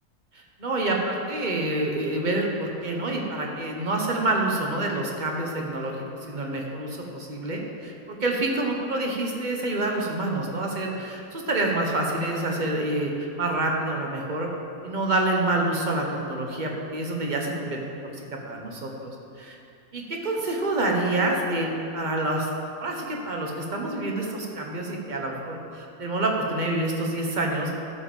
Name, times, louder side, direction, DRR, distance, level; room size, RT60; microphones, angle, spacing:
voice 1, 0.3-14.5 14.8-19.1 19.4-19.5 19.9-21.7 21.9-22.5 22.8-27.7, right 2 dB, 30° right, 0 dB, 1.3 m, -27 dB
13.0 x 5.3 x 7.2 m, 2.6 s
omnidirectional pair, 1.7 m